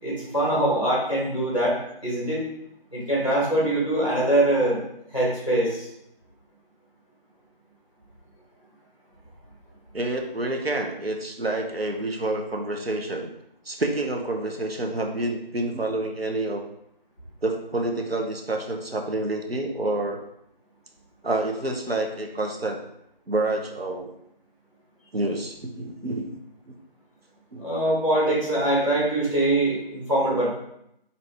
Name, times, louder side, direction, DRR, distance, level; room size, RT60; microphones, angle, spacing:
voice 1, 0.0-2.5 2.9-4.8 5.1-5.9 27.6-30.5, right 1 dB, 35° left, -5 dB, 1.4 m, -23 dB
voice 2, 9.9-13.3 13.6-16.6 17.4-20.2 21.2-22.8 23.3-24.1 25.1-26.4 27.5-27.7, right 2 dB, 90° right, 2 dB, 0.8 m, -28 dB
4.0 x 2.7 x 3.4 m, 0.77 s
figure-of-eight pair, 180°, 29 cm